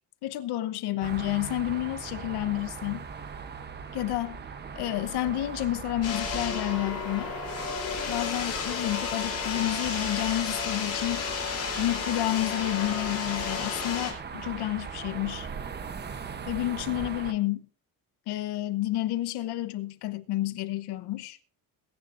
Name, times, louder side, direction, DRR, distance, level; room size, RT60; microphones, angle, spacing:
voice 1, 0.2-3.0 3.9-4.4 4.7-7.3 8.1-11.2 11.8-15.5 16.5-17.7 18.3-21.4, left 15 dB, 85° left, 1.1 m, -30 dB
sound 1, 1.0-17.3, right 6 dB, 25° right, 0.9 m, -40 dB
sound 2, 6.0-14.1, left 6 dB, 40° left, 4.2 m, -32 dB
22.0 x 10.5 x 2.6 m
cardioid pair, 165°, 38 cm